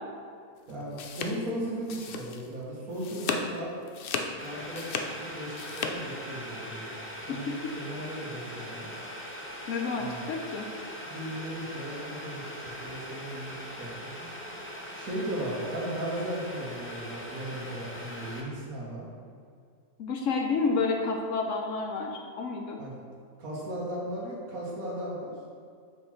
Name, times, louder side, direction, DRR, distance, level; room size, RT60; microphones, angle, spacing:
sound 1, 0.7-2.6 2.9-3.5 3.9-5.9, left 5 dB, 85° left, 0.4 m, -35 dB
voice 1, 0.7-3.8 4.4-7.0 7.3-8.9 9.9-10.3 11.0-14.3 14.9-19.0 22.8-23.0 23.4-25.3, right 1 dB, 70° right, -5 dB, 1.8 m, -36 dB
Boiling, 4.4-18.4, equal, 15° left, 0.4 m, -41 dB
voice 2, 9.7-10.7 20.0-22.8, left 4 dB, 65° left, 3 dB, 0.9 m, -30 dB
5.9 x 4.5 x 4.4 m, 2.2 s
omnidirectional pair, 1.6 m